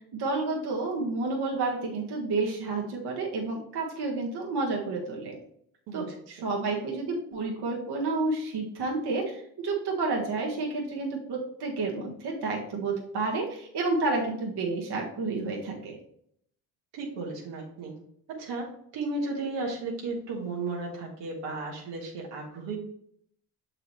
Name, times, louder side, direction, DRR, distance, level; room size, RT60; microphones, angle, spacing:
voice 1, 0.1-5.4 5.9-15.9, right 3 dB, 65° right, -1 dB, 1.5 m, -30 dB
voice 2, 5.9-6.3 16.9-17.9 18.3-22.8, right 3 dB, 85° right, -2 dB, 1.6 m, -34 dB
6.6 x 4.7 x 3.2 m, 0.69 s
supercardioid pair, 70°, 42 cm